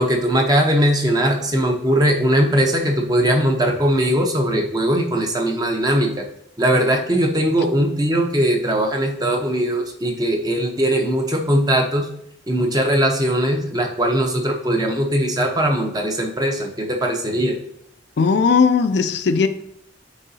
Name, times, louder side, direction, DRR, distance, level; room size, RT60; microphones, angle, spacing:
voice 1, 0.0-6.2 6.6-12.1 12.5-17.6, right 1 dB, 20° right, 3 dB, 0.8 m, -20 dB
voice 2, 18.2-19.5, left 5 dB, 55° left, 9 dB, 0.4 m, -17 dB
9.0 x 3.8 x 2.7 m, 0.75 s
head